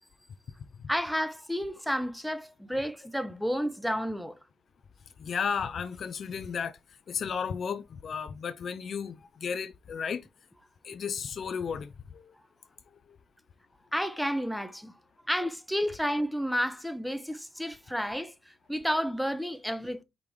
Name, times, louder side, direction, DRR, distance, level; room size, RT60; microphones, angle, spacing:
voice 1, 0.9-4.4 13.9-14.9 15.3-20.0, equal, ahead, 0.6 m, -31 dB
voice 2, 5.2-6.7 7.1-10.2 10.8-12.2, left 6 dB, 50° left, 0.3 m, -34 dB
5.1 x 3.5 x 3.0 m
cardioid pair, 90°, 0 cm